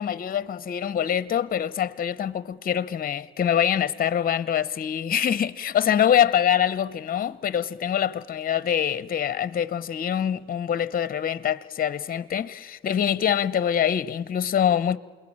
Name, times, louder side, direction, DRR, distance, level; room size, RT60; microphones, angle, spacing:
voice 1, 0.0-15.0, left 9 dB, 45° left, 0.9 m, -24 dB
28.0 x 21.0 x 8.8 m
cardioid pair, 90°, 20 cm